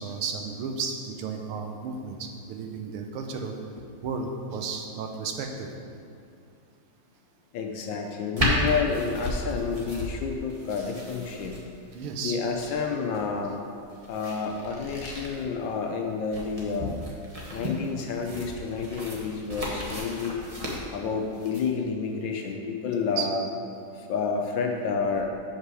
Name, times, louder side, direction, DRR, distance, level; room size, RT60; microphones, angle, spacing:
voice 1, 0.0-3.5 4.0-5.7 11.9-12.4 23.0-23.3, right 5 dB, 85° right, 4 dB, 1.7 m, -33 dB
voice 2, 7.5-11.5 12.2-13.6 14.1-16.9 17.5-20.4 20.9-23.4 23.9-25.3, left 5 dB, 70° left, 3 dB, 1.3 m, -29 dB
sound 1, 8.4-21.6, equal, 25° right, 0.8 m, -34 dB
6.9 x 5.5 x 6.2 m, 2.4 s
omnidirectional pair, 2.4 m